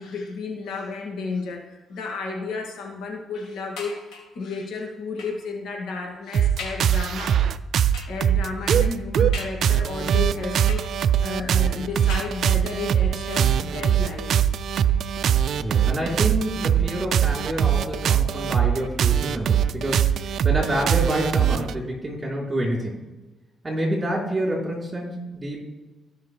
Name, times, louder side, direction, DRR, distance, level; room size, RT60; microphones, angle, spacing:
voice 1, 0.0-7.5 7.8-14.3, left 4 dB, 70° left, 0 dB, 2.3 m, -32 dB
sound 1, 3.8-4.4 5.2-5.5 6.0-6.1 6.6-7.0 7.9-8.3 9.3-10.0 10.7-11.3 12.1-12.8 13.6-13.7 14.0-14.1, left 4 dB, 85° left, 2.7 m, -39 dB
sound 2, 6.3-21.7, right 9 dB, 65° right, 0.4 m, -21 dB
voice 2, 15.6-23.0 23.6-25.6, right 1 dB, 25° right, -2 dB, 3.6 m, -28 dB
17.0 x 5.7 x 3.3 m, 1.1 s
cardioid pair, 90°, 0 cm